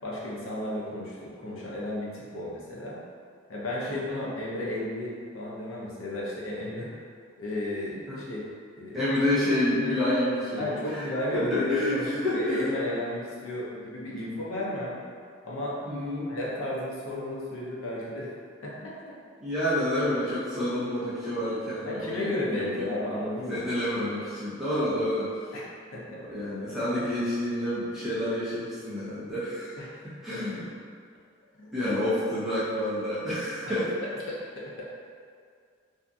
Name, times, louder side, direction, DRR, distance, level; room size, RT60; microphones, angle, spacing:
voice 1, 0.0-3.0 3.5-6.9 7.4-8.4 8.8-9.0 10.6-15.0 15.4-15.8 16.2-18.3 18.6-19.2 21.8-24.1 25.5-26.2 29.8-30.1 30.3-30.4 31.6-31.7 33.7-33.8 34.3-34.9, left 1 dB, 85° left, -6 dB, 0.6 m, -33 dB
voice 2, 3.9-4.2 8.1-8.2 8.9-11.0 11.3-12.7 15.9-16.3 19.4-23.0 23.5-25.3 26.2-29.7 30.0-30.7 31.7-33.9, left 1 dB, ahead, -12 dB, 0.7 m, -29 dB
2.7 x 2.5 x 2.3 m, 2.2 s
head